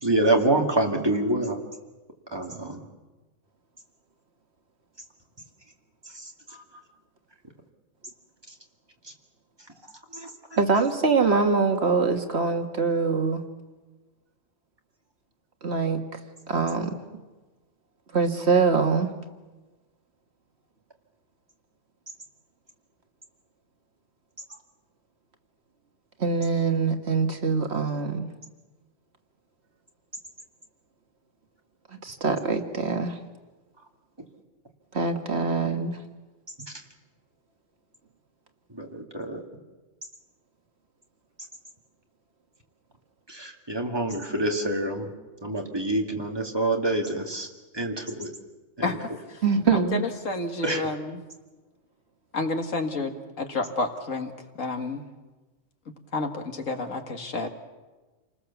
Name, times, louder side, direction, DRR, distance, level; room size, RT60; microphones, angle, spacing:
voice 1, 0.0-1.6 2.3-2.8 6.1-6.3 10.1-10.3 38.7-39.4 43.3-45.1 45.4-47.5 47.7-48.3 48.8-48.9 50.6-50.9, right 1 dB, 20° right, 1 dB, 2.3 m, -26 dB
voice 2, 10.6-13.4 15.6-16.2 16.5-16.9 18.1-19.1 26.2-28.3 31.9-33.2 34.9-36.0 49.4-50.0, right 4 dB, 55° right, 4 dB, 1.8 m, -24 dB
voice 3, 48.8-49.4 49.7-51.2 52.3-54.3 54.6-55.0 56.1-57.5, left 3 dB, 85° left, 5 dB, 2.2 m, -30 dB
28.5 x 19.5 x 7.1 m, 1.2 s
omnidirectional pair, 1.3 m